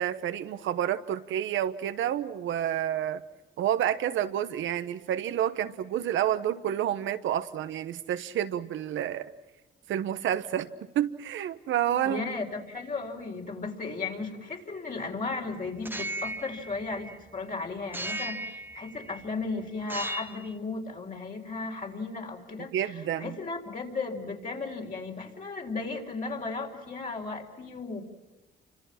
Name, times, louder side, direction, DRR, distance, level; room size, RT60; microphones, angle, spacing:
voice 1, 0.0-3.2 3.6-9.3 9.9-12.3 22.7-23.3, right 10 dB, 80° right, 11 dB, 1.2 m, -29 dB
voice 2, 12.0-28.0, left 3 dB, 45° left, 0 dB, 4.3 m, -35 dB
sound 1, 15.8-17.4 17.9-19.3 19.8-20.5, right 1 dB, 10° right, 0.9 m, -37 dB
29.0 x 25.5 x 5.9 m, 1.0 s
cardioid pair, 90°, 20 cm